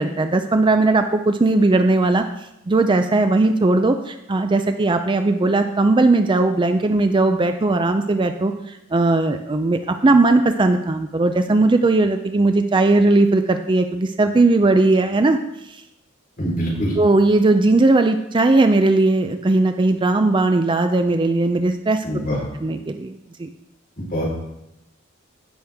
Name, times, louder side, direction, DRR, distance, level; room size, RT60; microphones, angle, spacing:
voice 1, 0.0-2.2 2.7-8.5 8.9-15.4 17.0-22.0 22.6-23.1 23.4-23.5, right 2 dB, 25° right, 7 dB, 0.4 m, -18 dB
voice 2, 16.4-16.9 22.0-22.4 24.0-24.4, equal, 45° left, -5 dB, 4.1 m, -24 dB
15.0 x 6.2 x 3.5 m, 0.86 s
head